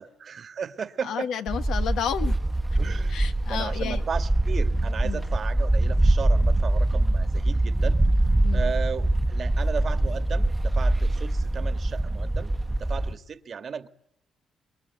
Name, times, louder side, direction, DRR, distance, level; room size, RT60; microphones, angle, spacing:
voice 1, 0.0-1.3 2.8-8.0 8.5-13.9, right 6 dB, 50° right, 1.6 m, -35 dB
voice 2, 1.0-2.4 3.1-4.0 5.0-5.3 8.4-8.7, left 8 dB, 80° left, 1.5 m, -31 dB
sound 1, 1.5-13.1, right 1 dB, 10° right, 1.2 m, -23 dB
26.0 x 22.5 x 9.3 m
cardioid pair, 90°, 0 cm